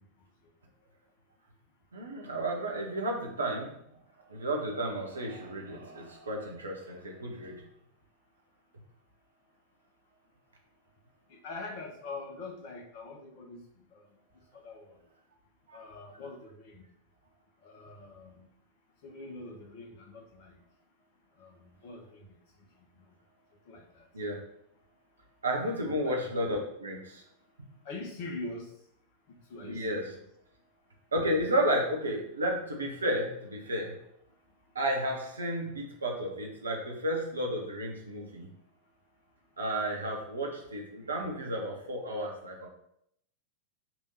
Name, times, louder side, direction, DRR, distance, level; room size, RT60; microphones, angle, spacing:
voice 1, 1.9-3.7 4.3-7.6 15.7-15.8 24.1-24.4 25.4-27.2 29.6-30.0 31.1-33.9 34.7-38.5 39.6-42.7, right 1 dB, 75° right, 0 dB, 1.5 m, -32 dB
voice 2, 11.3-13.6 13.9-14.1 14.5-15.0 15.7-16.8 17.6-18.5 19.0-20.6 21.4-22.4 22.8-23.0 23.7-24.1 25.7-26.2 27.8-28.7 29.5-30.2, left 3 dB, 45° left, 3 dB, 1.3 m, -43 dB
6.0 x 3.5 x 5.7 m, 0.74 s
figure-of-eight pair, 90°, 0 cm